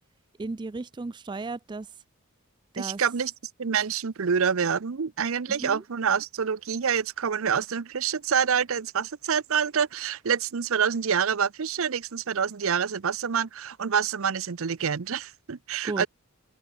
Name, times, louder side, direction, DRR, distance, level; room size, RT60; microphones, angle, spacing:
voice 1, 0.4-1.9 2.7-3.0 5.5-5.8 15.8-16.1, right 3 dB, 20° right, 0.3 m, -35 dB
voice 2, 2.8-3.3 3.6-16.1, right 7 dB, 65° right, 0.6 m, -27 dB
head